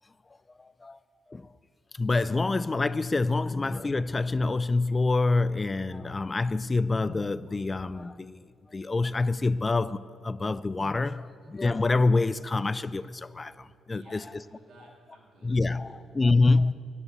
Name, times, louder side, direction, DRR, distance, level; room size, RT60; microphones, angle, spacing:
voice 1, 0.6-1.0 1.3-1.5 1.9-8.4 8.7-14.4 15.4-16.7, left 3 dB, 25° left, 0.3 m, -26 dB
voice 2, 13.9-16.0 16.4-16.5, right 2 dB, 65° right, 3.3 m, -56 dB
11.0 x 9.4 x 8.0 m
cardioid pair, 90°, 0 cm